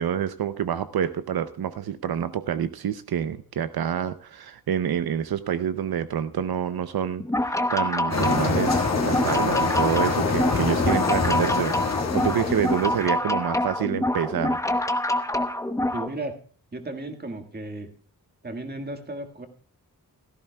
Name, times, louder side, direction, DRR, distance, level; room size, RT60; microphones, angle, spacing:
voice 1, 0.0-14.6, right 9 dB, 75° right, 12 dB, 0.7 m, -27 dB
sound 1, 7.2-16.1, left 1 dB, 10° left, 0.8 m, -26 dB
sound 2, 8.1-13.2, left 4 dB, 45° left, 1.7 m, -26 dB
voice 2, 15.9-16.4 16.7-17.9 18.4-19.5, right 2 dB, 25° right, 6 dB, 1.7 m, -34 dB
16.5 x 14.0 x 2.3 m, 0.43 s
wide cardioid pair, 160°, 37 cm